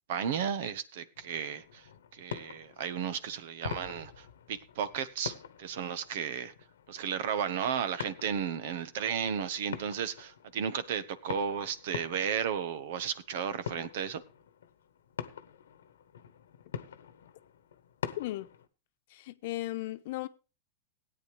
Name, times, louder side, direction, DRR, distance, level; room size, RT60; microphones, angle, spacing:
voice 1, 0.1-1.8 2.1-6.5 6.9-14.2, right 7 dB, 70° right, 1.3 m, -34 dB
sound 1, 1.1-18.7, left 8 dB, 85° left, 1.1 m, -45 dB
voice 2, 18.2-18.5 19.1-20.3, left 16 dB, 65° left, 1.0 m, -36 dB
17.0 x 9.2 x 3.4 m
hypercardioid pair, 115°, 0 cm